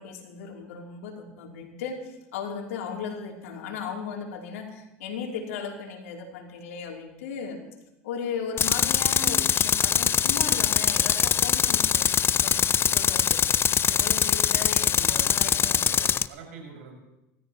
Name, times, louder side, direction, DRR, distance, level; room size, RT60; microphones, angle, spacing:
voice 1, 0.0-7.6 8.0-13.4 13.9-15.8, left 6 dB, 85° left, 1 dB, 3.1 m, -36 dB
Tools, 8.6-16.3, left 8 dB, 30° left, 0.4 m, -23 dB
voice 2, 14.9-16.9, right 5 dB, 85° right, 0 dB, 5.9 m, -44 dB
26.5 x 13.5 x 3.0 m, 0.91 s
hypercardioid pair, 90°, 7 cm